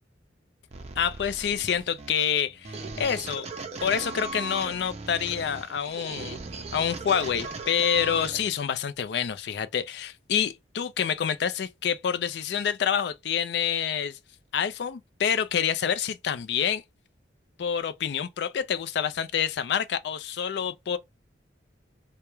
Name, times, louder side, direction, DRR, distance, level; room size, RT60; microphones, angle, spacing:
sound 1, 0.7-8.7, right 3 dB, 35° right, 0.4 m, -38 dB
voice 1, 1.0-3.5 3.8-6.4 6.7-14.2 14.5-16.8 17.6-21.0, left 8 dB, 70° left, 0.3 m, -27 dB
2.3 x 2.1 x 2.9 m
head